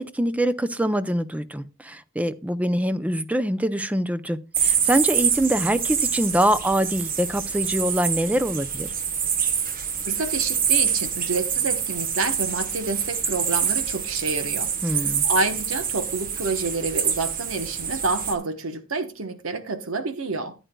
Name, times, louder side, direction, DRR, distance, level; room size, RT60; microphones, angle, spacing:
voice 1, 0.0-8.9 14.8-15.3, right 1 dB, 5° right, 0.4 m, -24 dB
sound 1, 4.5-18.3, right 7 dB, 40° right, 1.1 m, -26 dB
voice 2, 10.0-20.5, right 3 dB, 75° right, 1.0 m, -28 dB
14.0 x 9.2 x 2.2 m
head